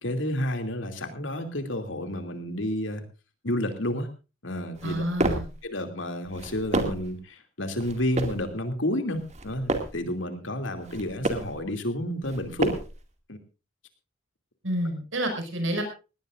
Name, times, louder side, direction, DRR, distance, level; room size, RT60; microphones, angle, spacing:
voice 1, 0.0-3.0 3.4-4.1 4.4-5.0 5.6-12.7 13.3-13.4, left 1 dB, 75° left, 6 dB, 2.7 m, -30 dB
sound 1, 4.7-5.6 6.2-7.1 7.8-8.5 9.2-10.0 10.7-11.6 12.2-13.0, right 2 dB, 35° right, 2.3 m, -30 dB
voice 2, 4.8-5.5 14.6-15.8, right 1 dB, 85° right, 5 dB, 5.7 m, -29 dB
19.5 x 18.0 x 2.5 m, 0.32 s
head